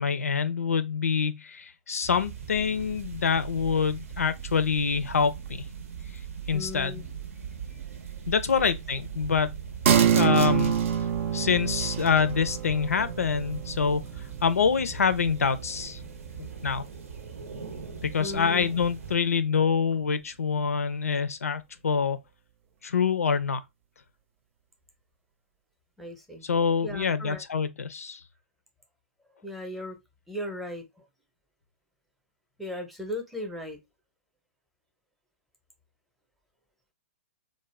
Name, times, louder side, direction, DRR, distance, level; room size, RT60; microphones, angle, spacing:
voice 1, 0.0-5.6 6.5-7.0 8.3-9.6 10.1-10.8 11.3-14.0 14.4-16.0 16.4-16.8 18.0-22.2 22.8-23.6 26.4-28.2, left 6 dB, 85° left, 0.4 m, -26 dB
sound 1, 2.0-19.2, right 7 dB, 75° right, 0.8 m, -40 dB
voice 2, 6.5-7.1 8.6-8.7 18.2-18.7 26.0-26.5 26.8-27.4 29.4-30.0 30.3-31.1 32.6-33.8, left 1 dB, ahead, 0.6 m, -37 dB
sound 2, 9.9-16.9 17.2-17.3, right 8 dB, 60° right, 0.4 m, -27 dB
2.4 x 2.1 x 3.1 m
hypercardioid pair, 125°, 8 cm